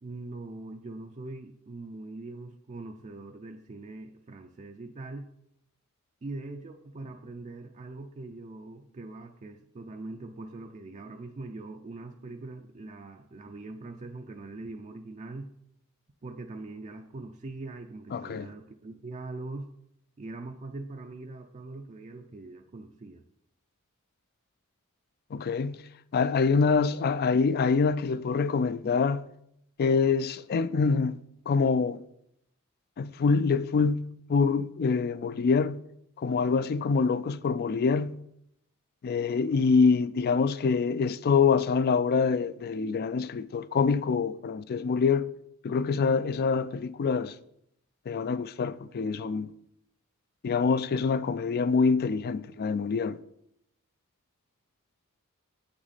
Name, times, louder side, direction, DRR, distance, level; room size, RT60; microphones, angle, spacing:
voice 1, 0.0-5.3 6.2-15.5 16.2-19.7 20.2-23.2, right 2 dB, 35° right, 0.4 m, -42 dB
voice 2, 18.1-18.5 25.3-25.8 26.1-29.3 29.8-31.2 31.5-32.0 33.0-35.8 36.2-38.2 39.0-45.3 45.6-47.3 48.1-49.5 50.4-53.2, left 5 dB, 45° left, 0.3 m, -25 dB
8.1 x 6.1 x 4.1 m
head